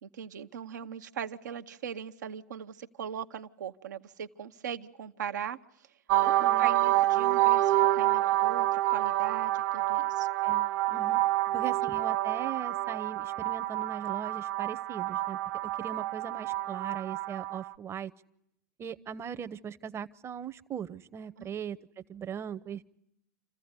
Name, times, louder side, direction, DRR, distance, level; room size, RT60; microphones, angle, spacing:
voice 1, 0.0-5.6 6.2-10.3 11.5-11.6 21.4-21.5, right 8 dB, 80° right, 8 dB, 0.9 m, -40 dB
sound 1, 6.1-17.7, right 15 dB, 60° right, 1.0 m, -28 dB
voice 2, 6.4-6.7 10.4-11.2 11.5-18.1 18.8-21.8 22.1-22.8, right 8 dB, 25° right, 12 dB, 0.8 m, -39 dB
28.0 x 15.0 x 9.6 m, 0.80 s
hypercardioid pair, 95°, 10 cm